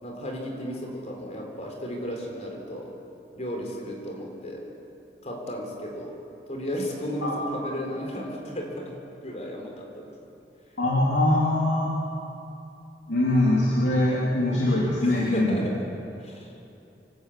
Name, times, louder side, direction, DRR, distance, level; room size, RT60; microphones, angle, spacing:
voice 1, 0.0-2.9 3.4-4.6 5.2-6.2 6.5-9.0 9.2-10.1 15.0-15.8 16.2-16.5, equal, 40° left, 1 dB, 3.9 m, -34 dB
voice 2, 10.8-11.9 13.1-15.6, left 1 dB, 85° left, -5 dB, 3.1 m, -22 dB
26.5 x 12.0 x 8.6 m, 2.9 s
head